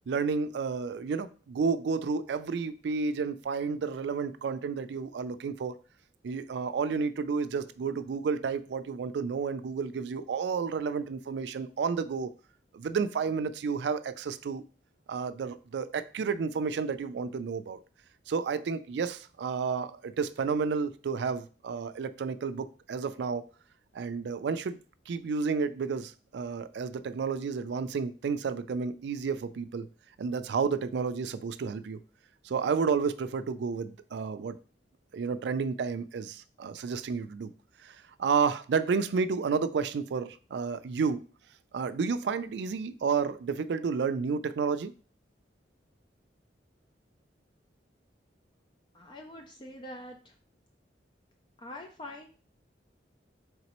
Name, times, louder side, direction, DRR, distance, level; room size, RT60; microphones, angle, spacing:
voice 1, 0.1-5.8 6.2-12.3 12.7-14.6 15.1-17.8 18.3-23.4 23.9-24.8 25.1-29.9 30.2-32.0 32.4-34.6 35.1-37.5 37.8-41.3 41.7-44.9, right 5 dB, 70° right, 13 dB, 0.3 m, -31 dB
voice 2, 48.9-50.4 51.6-52.3, left 1 dB, 25° left, 3 dB, 0.4 m, -44 dB
4.1 x 3.6 x 2.9 m, 0.38 s
head